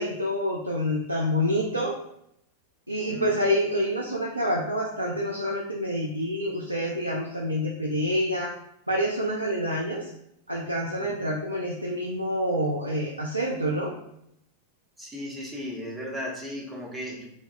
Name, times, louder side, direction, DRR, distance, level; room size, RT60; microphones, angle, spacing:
voice 1, 0.0-2.0 2.9-8.5 8.9-10.1 10.5-13.9, equal, 85° right, -2 dB, 0.3 m, -27 dB
voice 2, 15.0-17.2, left 1 dB, 10° right, -2 dB, 0.7 m, -36 dB
2.6 x 2.2 x 2.3 m, 0.78 s
figure-of-eight pair, 90°, 0 cm